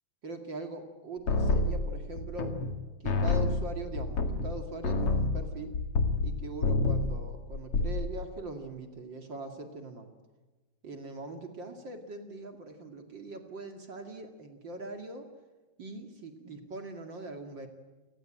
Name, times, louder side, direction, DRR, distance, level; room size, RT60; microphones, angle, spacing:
voice 1, 0.2-2.6 3.0-5.8 6.2-10.1 10.8-15.3 15.8-17.7, right 2 dB, 40° right, 5 dB, 2.7 m, -41 dB
sound 1, 1.3-2.8 3.1-6.3 6.6-7.2 7.5-8.1, left 3 dB, 50° left, 2.9 m, -28 dB
28.5 x 19.5 x 9.0 m, 1.2 s
omnidirectional pair, 3.5 m